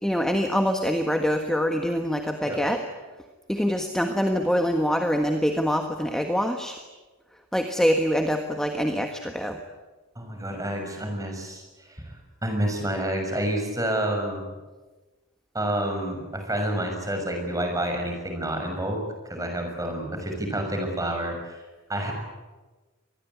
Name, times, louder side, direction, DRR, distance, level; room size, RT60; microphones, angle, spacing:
voice 1, 0.0-2.9 3.5-6.8 7.5-9.6, equal, 5° left, 5 dB, 1.5 m, -25 dB
voice 2, 10.1-11.6 11.9-12.2 12.4-14.4 15.5-19.0 19.2-21.6 21.9-22.1, right 1 dB, 15° right, 3 dB, 6.3 m, -29 dB
25.0 x 20.0 x 9.7 m, 1.2 s
head